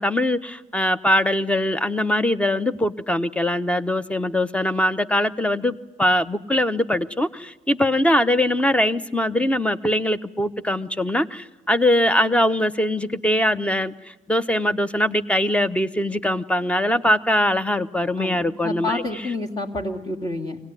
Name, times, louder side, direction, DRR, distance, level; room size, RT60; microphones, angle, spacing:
voice 1, 0.0-19.0, left 1 dB, 5° left, 12 dB, 0.8 m, -22 dB
voice 2, 18.2-20.6, left 2 dB, 30° left, -4 dB, 2.2 m, -29 dB
24.5 x 18.0 x 9.7 m, 1.1 s
cardioid pair, 90°, 20 cm